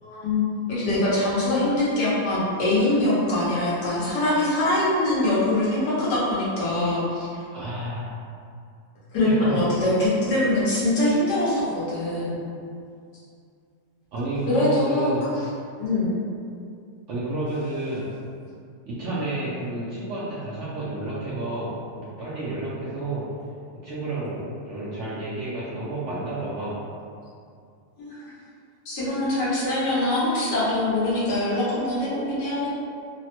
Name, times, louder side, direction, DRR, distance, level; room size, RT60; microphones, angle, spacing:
voice 1, 0.0-7.4 9.1-12.3 14.5-15.5 15.8-16.2 28.0-28.2 28.8-32.7, left 1 dB, 85° left, -8 dB, 1.4 m, -23 dB
voice 2, 7.5-8.1 9.2-9.6 14.1-15.3 17.1-18.1 18.8-23.2 23.8-26.8, right 2 dB, 75° right, -9 dB, 0.7 m, -30 dB
3.2 x 2.1 x 2.8 m, 2.3 s
omnidirectional pair, 1.7 m